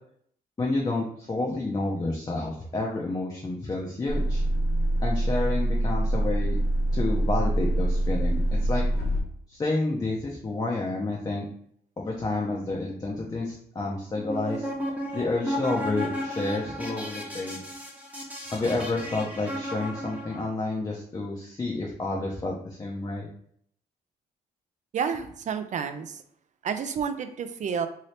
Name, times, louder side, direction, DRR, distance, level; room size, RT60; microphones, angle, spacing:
voice 1, 0.6-4.4 5.0-6.6 6.9-8.8 9.5-11.5 12.0-14.7 15.1-17.6 18.5-23.3, left 2 dB, 25° left, -2 dB, 0.6 m, -30 dB
sound 1, 4.1-9.2, right 1 dB, 90° left, 0.8 m, -25 dB
sound 2, 14.1-20.5, equal, 10° right, 0.8 m, -34 dB
voice 2, 24.9-26.2 26.6-27.9, right 7 dB, 45° right, 9 dB, 0.4 m, -30 dB
2.8 x 2.7 x 3.2 m, 0.65 s
cardioid pair, 105°, 17 cm